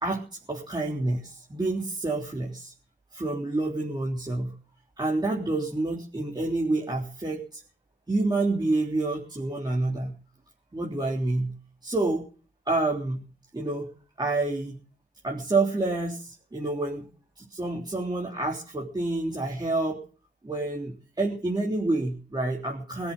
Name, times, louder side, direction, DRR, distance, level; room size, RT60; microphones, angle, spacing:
voice 1, 0.0-2.7 3.1-4.6 5.0-7.6 8.1-10.2 10.7-11.5 11.8-12.3 12.7-13.2 13.5-13.9 14.2-14.8 15.2-17.1 17.4-20.0 20.4-23.1, right 2 dB, 20° right, -2 dB, 3.6 m, -28 dB
21.5 x 7.9 x 7.5 m, 0.40 s
wide cardioid pair, 95°, 19 cm